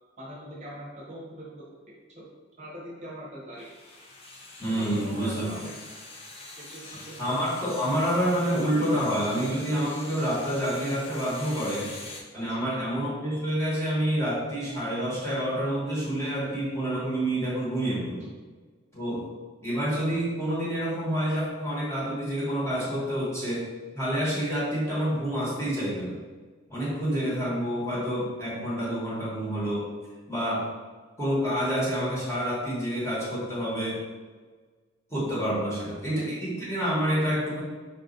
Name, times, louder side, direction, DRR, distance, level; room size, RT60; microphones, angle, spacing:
voice 1, 0.2-1.7 2.2-2.3 2.6-3.7 4.7-5.7 6.6-7.1 12.3-12.7 35.9-36.3, equal, 35° right, -5 dB, 0.9 m, -42 dB
sound 1, 3.6-12.2, left 2 dB, 30° left, 0.6 m, -44 dB
voice 2, 4.6-5.5 7.2-11.9 12.3-18.3 18.9-19.2 19.6-23.7 23.9-26.2 26.7-29.9 30.3-30.6 31.2-34.0 35.1-37.6, equal, 15° left, -8 dB, 1.2 m, -28 dB
5.1 x 2.6 x 3.9 m, 1.4 s
head